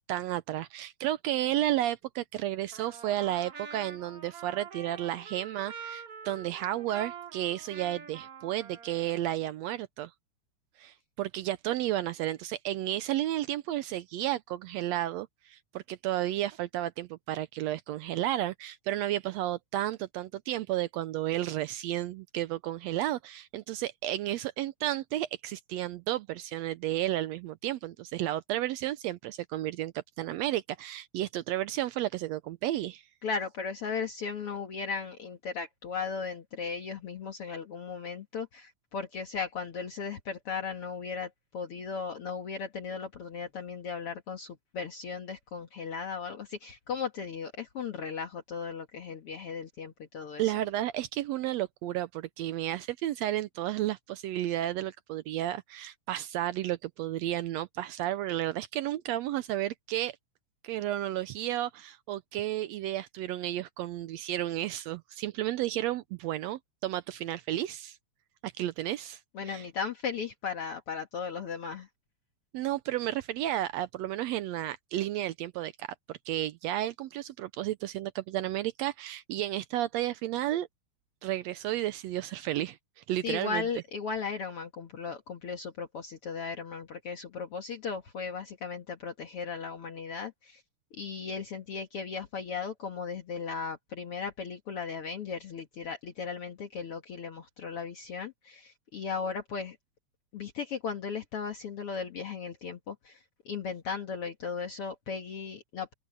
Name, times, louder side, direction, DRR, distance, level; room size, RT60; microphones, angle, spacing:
voice 1, 0.0-10.1 10.8-33.0 50.4-60.2 60.6-68.0 68.4-69.2 69.5-69.6 72.5-80.7 81.2-82.8 83.1-83.6, right 13 dB, 80° right, 1.7 m, -32 dB
Trumpet, 2.7-9.3, right 6 dB, 55° right, 3.2 m, -45 dB
voice 2, 33.2-50.5 69.3-71.9 83.2-90.6 90.9-99.8 100.3-105.9, left 5 dB, 55° left, 2.3 m, -36 dB
open air
omnidirectional pair, 3.3 m